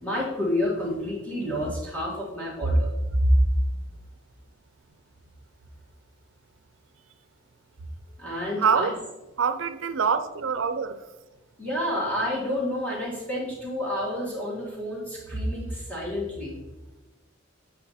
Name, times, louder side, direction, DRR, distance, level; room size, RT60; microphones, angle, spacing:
voice 1, 0.0-2.9 3.2-3.5 8.2-8.9 11.6-16.6, equal, 10° left, 1.8 m, -27 dB
voice 2, 8.6-9.0 9.4-11.0, right 6 dB, 80° right, 0.5 m, -25 dB
8.3 x 4.4 x 4.2 m
head